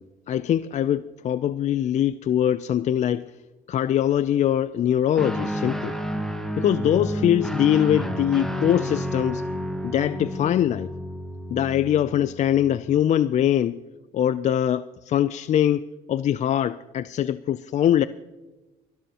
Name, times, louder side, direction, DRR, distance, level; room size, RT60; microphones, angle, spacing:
voice 1, 0.0-3.3 3.7-6.0 6.6-9.4 9.8-10.9 11.5-13.8 14.1-18.1, left 10 dB, 45° left, 0.4 m, -22 dB
Guitar, 5.2-12.8, equal, 5° left, 1.5 m, -30 dB
22.0 x 13.0 x 2.9 m
cardioid pair, 110°, 17 cm